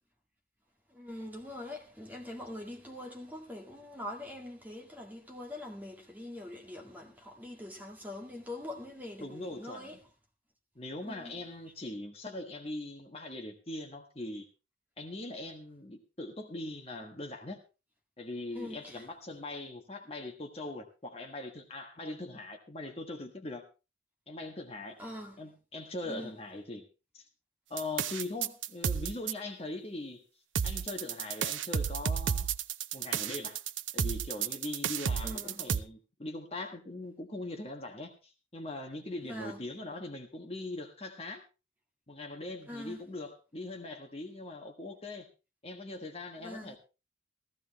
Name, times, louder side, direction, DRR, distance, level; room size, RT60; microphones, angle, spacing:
voice 1, 0.9-10.0 11.0-11.4 18.5-19.1 25.0-25.4 26.0-26.3 35.2-35.7 39.3-39.7 42.7-43.0 46.4-46.8, left 1 dB, 10° right, 2.0 m, -43 dB
voice 2, 9.2-10.0 10.7-14.5 15.0-17.6 18.2-23.6 24.3-25.0 25.4-26.8 27.1-27.3 27.7-30.2 30.6-32.5 32.9-33.6 33.9-41.4 42.1-45.3 45.6-46.8, left 2 dB, 30° left, 1.5 m, -41 dB
sound 1, 27.8-29.3 30.5-35.8, right 7 dB, 80° right, 0.6 m, -32 dB
15.0 x 15.0 x 3.1 m
head